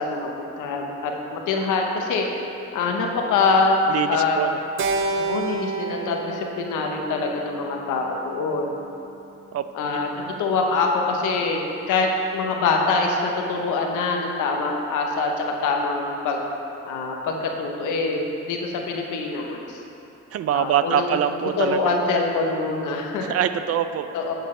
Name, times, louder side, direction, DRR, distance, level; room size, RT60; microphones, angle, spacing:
voice 1, 0.0-2.3 2.7-3.8 4.1-4.4 5.2-8.8 9.7-10.1 10.4-16.4 16.9-19.8 20.5-21.1 21.6-23.3 24.1-24.3, left 4 dB, 85° left, 1 dB, 1.0 m, -24 dB
voice 2, 3.9-4.6 9.5-9.6 20.3-21.9 23.2-24.1, right 9 dB, 55° right, 11 dB, 0.4 m, -24 dB
Keyboard (musical), 4.8-9.2, right 4 dB, 85° right, 0.7 m, -30 dB
8.5 x 8.0 x 3.3 m, 2.8 s
cardioid pair, 90°, 30 cm